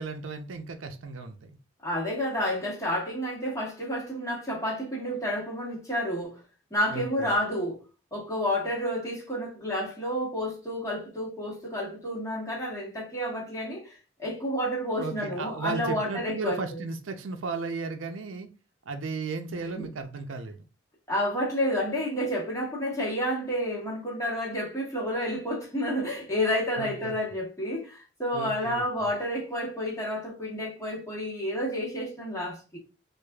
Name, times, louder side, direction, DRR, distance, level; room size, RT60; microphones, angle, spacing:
voice 1, 0.0-1.5 6.9-7.3 15.0-18.5 18.9-20.6 26.8-27.1 28.3-28.8, right 4 dB, 80° right, 0.5 m, -35 dB
voice 2, 1.8-6.4 6.7-7.8 8.1-16.8 19.8-19.9 21.1-32.8, equal, 15° left, 1.4 m, -30 dB
4.7 x 2.5 x 2.3 m
head